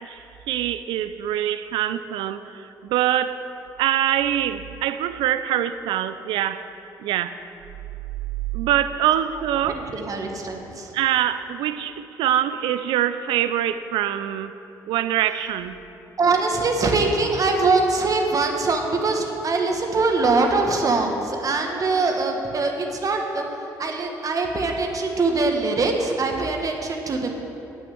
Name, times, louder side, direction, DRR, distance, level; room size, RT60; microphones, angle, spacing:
voice 1, 0.5-2.4 2.8-3.4 3.8-6.6 7.0-7.3 8.5-9.9 10.9-14.5 14.9-15.7, right 11 dB, 80° right, 12 dB, 0.4 m, -24 dB
voice 2, 9.7-10.9 16.2-23.4 23.8-27.3, right 3 dB, 45° right, 2 dB, 1.4 m, -23 dB
8.6 x 6.4 x 7.7 m, 2.9 s
supercardioid pair, 70°, 8 cm